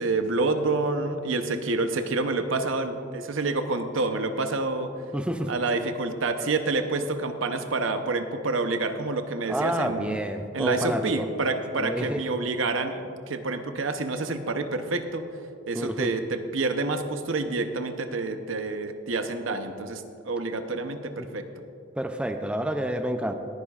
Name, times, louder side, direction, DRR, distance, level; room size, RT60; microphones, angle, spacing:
voice 1, 0.0-4.9 5.5-10.2 10.5-15.2 15.7-21.4, right 3 dB, 90° right, 7 dB, 0.8 m, -28 dB
voice 2, 5.1-5.5 9.5-11.3 11.8-12.2 15.7-16.1 21.2-21.3 22.0-23.3, equal, 5° right, 6 dB, 0.4 m, -29 dB
19.5 x 10.0 x 2.4 m, 2.5 s
head